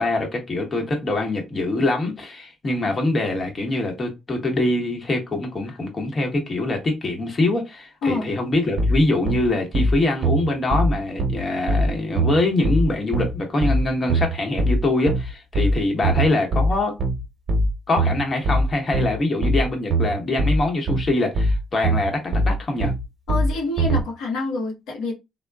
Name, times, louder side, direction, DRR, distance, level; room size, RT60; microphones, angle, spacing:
voice 1, 0.0-16.9 17.9-22.9, left 2 dB, 35° left, 1.0 m, -24 dB
sound 1, 8.8-24.0, right 1 dB, 50° right, 0.8 m, -22 dB
voice 2, 23.3-25.1, left 3 dB, 90° left, 0.9 m, -26 dB
3.6 x 2.2 x 2.3 m
cardioid pair, 90°, 0 cm